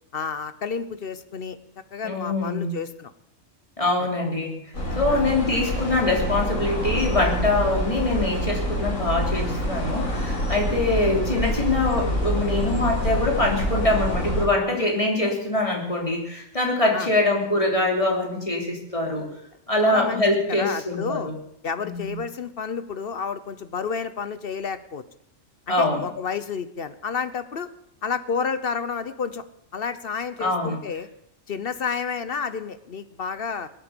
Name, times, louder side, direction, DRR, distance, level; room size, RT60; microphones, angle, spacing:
voice 1, 0.1-1.6 1.9-3.1 5.1-5.3 16.9-17.1 19.8-20.2 20.5-21.3 21.6-25.0 25.7-27.7 28.0-29.4 29.7-31.1 31.5-33.7, left 6 dB, 50° left, 13 dB, 0.9 m, -30 dB
voice 2, 2.0-2.7 3.8-4.5 4.9-19.3 19.7-21.3 21.8-22.2 25.7-26.0 30.4-30.8, left 2 dB, 25° left, -1 dB, 3.4 m, -24 dB
sound 1, 4.7-14.5, equal, 85° left, 5.3 m, -26 dB
21.5 x 9.0 x 6.9 m, 0.75 s
omnidirectional pair, 1.4 m